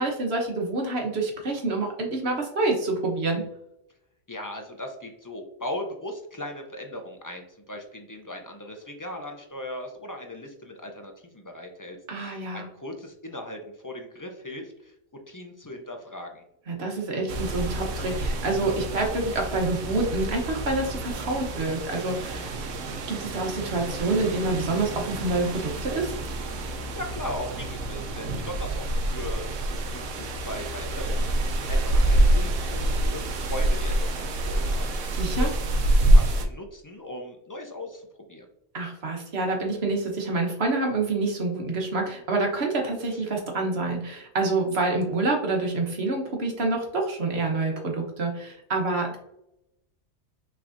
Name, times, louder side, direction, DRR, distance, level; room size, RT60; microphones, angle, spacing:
voice 1, 0.0-3.4 12.1-12.7 16.7-22.6 23.1-26.1 35.1-35.5 38.7-49.2, right 2 dB, 60° right, 2 dB, 1.3 m, -27 dB
voice 2, 4.3-14.9 15.3-16.4 27.0-35.6 36.1-38.5, left 1 dB, 25° left, 3 dB, 0.4 m, -38 dB
sound 1, 17.3-36.5, right 1 dB, 85° right, 1.1 m, -26 dB
6.0 x 3.3 x 2.6 m, 0.79 s
omnidirectional pair, 1.3 m